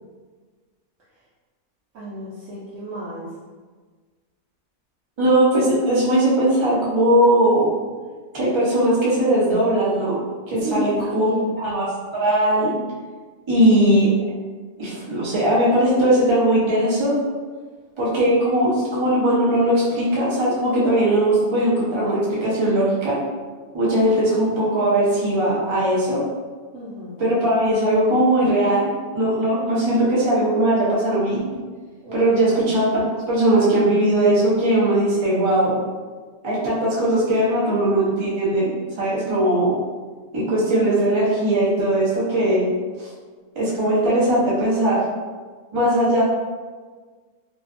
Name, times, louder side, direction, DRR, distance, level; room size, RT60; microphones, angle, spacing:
voice 1, 1.9-3.3 10.5-11.5 26.7-27.2 32.0-32.4, equal, 65° right, -9 dB, 0.9 m, -32 dB
voice 2, 5.2-7.6 8.3-10.2 10.5-11.3 11.6-11.9 12.1-12.7 13.5-14.1 14.8-17.2 18.0-23.2 23.7-26.2 27.2-31.4 32.1-35.7 36.4-38.7 39.0-39.7 40.3-42.6 43.0-43.1 43.6-45.0 45.7-46.2, right 1 dB, 40° right, -7 dB, 0.4 m, -19 dB
2.5 x 2.3 x 2.4 m, 1.4 s
omnidirectional pair, 1.5 m